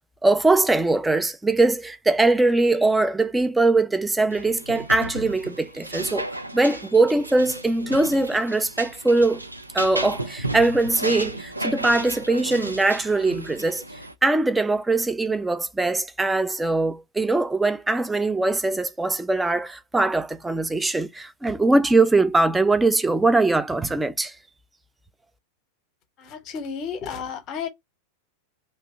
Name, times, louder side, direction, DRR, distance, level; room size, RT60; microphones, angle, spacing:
voice 1, 0.2-6.3 6.5-9.4 9.7-13.8 14.2-24.3, right 2 dB, 10° right, 0.4 m, -21 dB
sound 1, 4.3-14.1, right 1 dB, 85° right, 0.4 m, -34 dB
voice 2, 26.2-27.7, left 6 dB, 35° left, 0.8 m, -32 dB
2.7 x 2.1 x 3.4 m
figure-of-eight pair, 90°, 0 cm